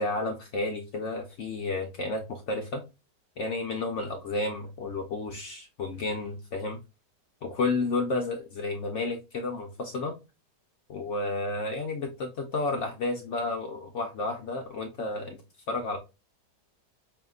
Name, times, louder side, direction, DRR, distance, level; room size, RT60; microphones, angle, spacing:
voice 1, 0.0-2.8 3.4-6.8 7.4-10.1 10.9-15.4 15.7-16.0, left 3 dB, 70° left, 4 dB, 0.7 m, -31 dB
5.0 x 2.8 x 2.3 m, 0.27 s
omnidirectional pair, 1.9 m